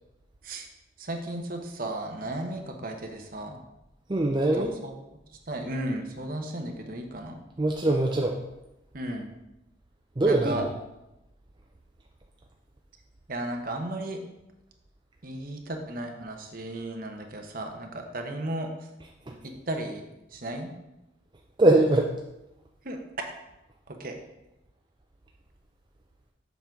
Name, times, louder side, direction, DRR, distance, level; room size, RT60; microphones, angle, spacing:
voice 1, 1.0-3.6 4.6-4.9 5.5-7.4 8.9-9.3 10.2-10.6 13.3-14.2 15.2-18.7 19.4-20.7 22.8-23.0 23.9-24.2, right 1 dB, 45° right, 3 dB, 0.9 m, -34 dB
voice 2, 4.1-4.7 7.6-8.4 10.2-10.7 19.3-19.4 21.6-22.1, right 2 dB, 25° right, 0 dB, 0.5 m, -22 dB
7.1 x 3.9 x 5.8 m, 0.93 s
head